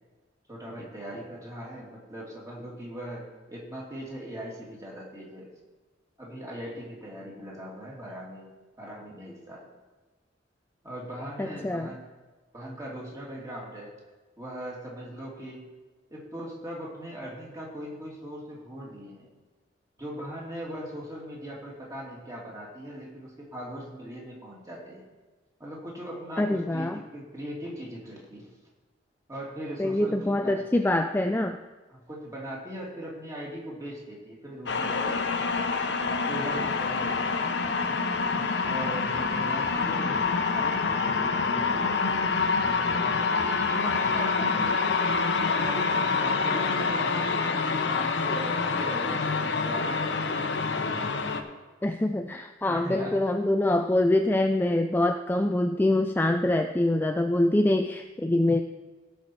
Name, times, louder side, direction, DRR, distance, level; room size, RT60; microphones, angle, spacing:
voice 1, 0.5-5.5 6.2-8.5 8.8-9.7 10.8-12.1 12.5-14.0 14.4-15.7 16.1-19.3 20.0-25.1 25.6-28.5 29.3-30.6 31.9-35.6 36.2-37.7 38.6-43.3 43.8-45.1 45.6-50.6 52.7-53.3, equal, 20° right, -4 dB, 2.6 m, -40 dB
voice 2, 11.4-11.9 26.4-27.0 29.8-31.6 51.8-58.6, left 1 dB, 10° left, 6 dB, 0.3 m, -25 dB
sound 1, 34.7-51.4, left 4 dB, 65° left, 0.9 m, -26 dB
17.0 x 5.7 x 4.6 m, 1.3 s
head